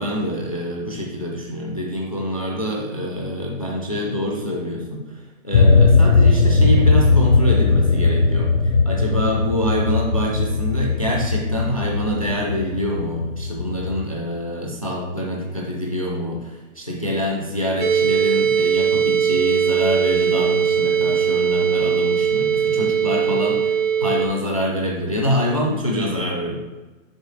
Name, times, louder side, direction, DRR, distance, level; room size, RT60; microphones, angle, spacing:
voice 1, 0.0-8.5 8.9-23.7 24.0-26.6, equal, 30° left, -2 dB, 0.4 m, -25 dB
sound 1, 5.5-14.0, left 4 dB, 80° left, 0.8 m, -18 dB
sound 2, 17.8-24.3, right 8 dB, 40° right, 0.6 m, -20 dB
6.3 x 4.2 x 3.8 m, 1.2 s
hypercardioid pair, 180°, 39 cm